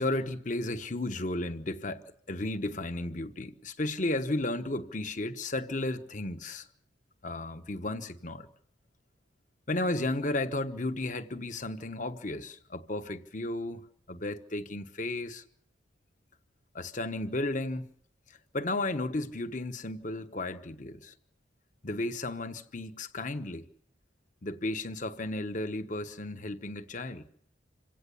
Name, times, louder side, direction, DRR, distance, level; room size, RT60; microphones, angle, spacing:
voice 1, 0.0-6.7 7.2-8.5 9.7-13.8 14.1-15.4 16.7-17.9 18.5-21.1 21.8-23.7 24.4-27.3, left 2 dB, 40° left, 1.1 m, -34 dB
26.5 x 17.0 x 7.0 m
head